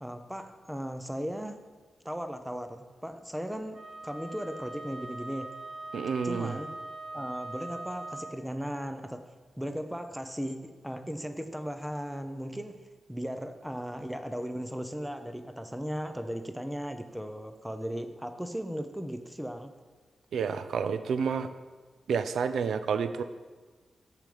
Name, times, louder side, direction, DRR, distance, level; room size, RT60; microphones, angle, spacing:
voice 1, 0.0-1.6 2.0-5.5 6.2-6.7 7.1-9.2 9.6-19.8, equal, 5° right, 8 dB, 0.4 m, -37 dB
Wind instrument woodwind instrument, 3.7-8.5, right 2 dB, 45° right, 0.7 m, -41 dB
voice 2, 5.9-6.6 20.3-21.5 22.1-23.2, right 6 dB, 85° right, 11 dB, 0.4 m, -29 dB
6.4 x 5.0 x 6.9 m, 1.4 s
wide cardioid pair, 165°, 0 cm